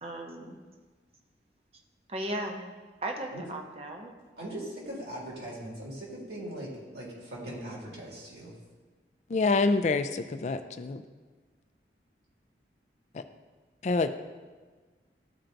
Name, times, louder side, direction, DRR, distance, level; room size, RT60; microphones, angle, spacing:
voice 1, 0.0-0.6 2.1-2.6 3.0-4.1, right 1 dB, 35° right, 2 dB, 0.7 m, -36 dB
voice 2, 4.4-8.5, right 1 dB, 65° right, -4 dB, 2.1 m, -40 dB
voice 3, 9.3-11.0 13.1-13.2 13.8-14.2, left 3 dB, 40° left, 9 dB, 0.3 m, -27 dB
12.5 x 4.4 x 2.6 m, 1.4 s
head